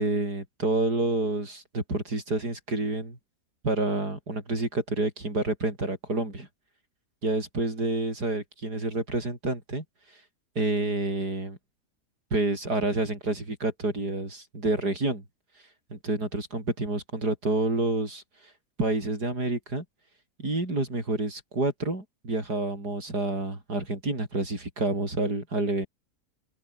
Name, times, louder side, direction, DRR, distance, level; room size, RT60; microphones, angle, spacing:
voice 1, 0.0-3.2 3.6-6.5 7.2-9.8 10.6-11.6 12.3-15.2 15.9-18.2 18.8-19.9 20.4-25.9, right 2 dB, 85° right, 7.2 m, -28 dB
open air
omnidirectional pair, 1.7 m